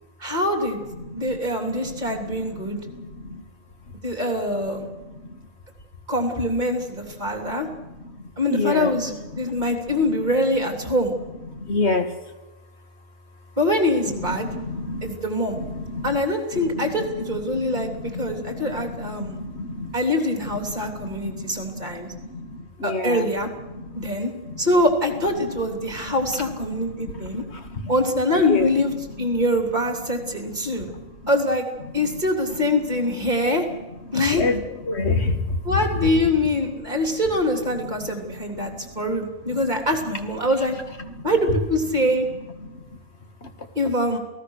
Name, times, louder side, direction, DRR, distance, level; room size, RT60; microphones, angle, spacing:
voice 1, 0.2-0.8 1.1-2.8 4.0-4.9 6.1-7.7 8.4-11.1 13.6-14.5 15.0-15.6 16.0-17.9 18.2-19.4 19.9-22.1 22.8-23.5 24.0-24.3 24.6-27.4 27.9-28.9 29.2-30.9 31.3-31.6 31.9-33.7 34.1-34.4 35.6-40.7 41.2-42.3 43.8-44.2, left 1 dB, 30° right, 4 dB, 3.4 m, -24 dB
voice 2, 1.0-1.4 1.7-2.4 2.6-3.4 4.8-5.4 7.5-7.9 8.5-8.9 9.3-9.7 11.5-12.1 14.1-15.1 15.5-16.2 16.5-19.9 20.6-23.3 23.7-24.1 24.4-24.6 26.0-26.1 26.7-27.9 28.5-28.7 29.2-29.4 30.7-31.0 32.0-32.1 34.1-36.1 37.8-38.1 38.6-39.0 39.5-39.6 41.0-41.6 42.6-42.8 43.4-43.5, left 3 dB, 50° left, 6 dB, 2.3 m, -30 dB
28.5 x 18.5 x 6.6 m, 1.1 s
omnidirectional pair, 1.4 m